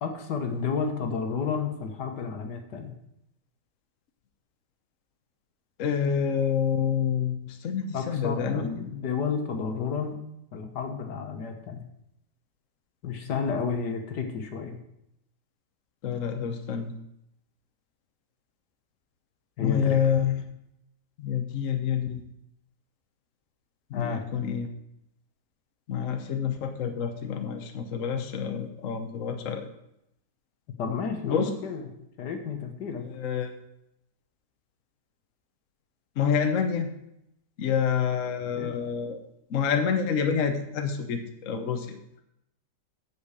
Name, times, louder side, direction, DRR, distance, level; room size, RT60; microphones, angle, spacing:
voice 1, 0.0-2.9 7.9-10.2 10.5-11.8 13.0-14.8 19.6-20.1 23.9-24.2 30.8-31.9 32.2-33.0 38.4-38.8, left 5 dB, 80° left, 5 dB, 1.8 m, -31 dB
voice 2, 5.8-8.7 16.0-17.0 19.6-20.4 21.2-22.2 23.9-24.7 25.9-29.7 31.2-31.5 33.1-33.6 36.2-36.9 37.6-39.2 39.5-42.0, left 7 dB, 55° left, 5 dB, 1.2 m, -27 dB
8.4 x 6.2 x 6.6 m, 0.80 s
omnidirectional pair, 1.8 m